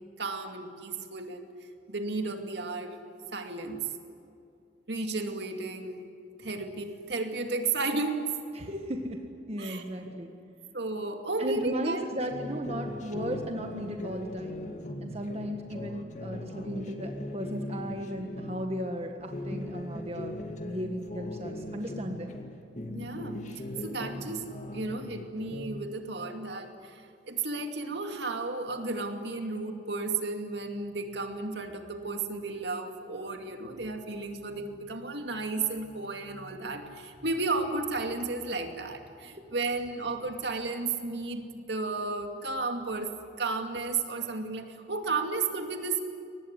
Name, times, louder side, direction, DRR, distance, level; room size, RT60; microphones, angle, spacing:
voice 1, 0.2-1.5 1.9-3.0 3.3-3.9 4.9-6.0 6.4-8.3 9.6-9.8 10.7-12.0 22.9-23.4 23.8-24.4 24.7-43.1 43.4-46.0, right 3 dB, 65° right, 5 dB, 2.5 m, -33 dB
voice 2, 8.5-10.3 11.4-14.7 15.0-20.3 20.6-22.4 39.4-39.5, equal, 35° right, 4 dB, 1.6 m, -36 dB
sound 1, 12.3-18.8 19.2-22.5 22.8-25.9, left 1 dB, 40° left, 2.3 m, -39 dB
23.5 x 19.5 x 9.7 m, 2.6 s
head